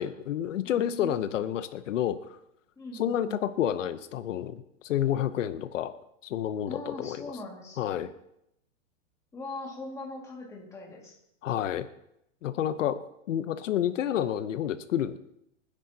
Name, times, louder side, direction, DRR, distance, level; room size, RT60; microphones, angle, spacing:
voice 1, 0.0-2.4 2.9-5.9 6.2-7.4 7.8-8.1 11.4-11.9 12.4-13.0 13.3-15.2, left 10 dB, 75° left, 11 dB, 0.9 m, -29 dB
voice 2, 0.6-1.2 2.8-3.4 6.7-8.0 9.3-11.1, left 2 dB, 10° left, -2 dB, 2.0 m, -41 dB
26.5 x 10.0 x 2.8 m, 0.80 s
supercardioid pair, 165°, 38 cm